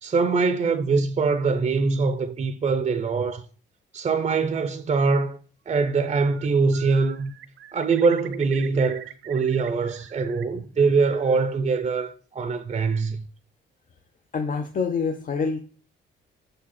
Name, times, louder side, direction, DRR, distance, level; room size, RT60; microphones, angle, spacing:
voice 1, 0.0-3.4 3.9-5.4 5.7-7.3 7.7-13.3, right 4 dB, 35° right, 0.5 m, -23 dB
Bird, 5.9-6.5 6.7-10.4 10.8-11.6, right 12 dB, 80° right, 0.7 m, -44 dB
voice 2, 14.3-15.6, left 5 dB, 40° left, 0.7 m, -26 dB
6.3 x 5.0 x 4.2 m
cardioid pair, 90°, 20 cm